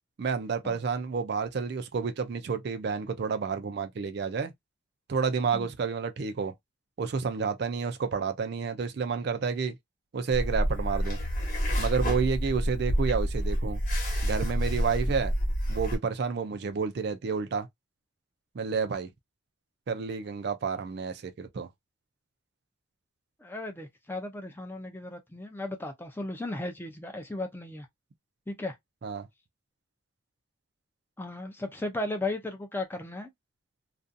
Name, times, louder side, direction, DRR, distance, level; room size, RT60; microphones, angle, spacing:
voice 1, 0.2-4.5 5.1-6.5 7.0-9.8 10.1-11.2 11.8-13.8 14.2-15.3 15.7-17.7 18.5-19.1 19.9-21.7 29.0-29.3, right 5 dB, 55° right, 0.4 m, -30 dB
sound 1, 10.3-16.0, equal, 40° left, 1.0 m, -28 dB
voice 2, 23.4-27.9 28.5-28.8 31.2-33.3, left 2 dB, 10° left, 0.4 m, -35 dB
2.5 x 2.3 x 2.5 m
head